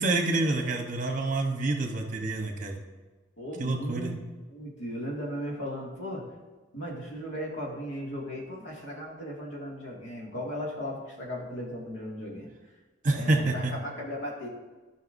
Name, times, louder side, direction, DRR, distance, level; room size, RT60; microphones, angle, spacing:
voice 1, 0.0-2.8 3.6-4.1 13.0-13.7, right 2 dB, 40° right, 3 dB, 1.1 m, -27 dB
voice 2, 3.4-4.2 4.5-6.2 6.7-12.5 13.1-14.5, equal, 80° left, -2 dB, 2.2 m, -36 dB
14.5 x 5.8 x 2.7 m, 1.3 s
head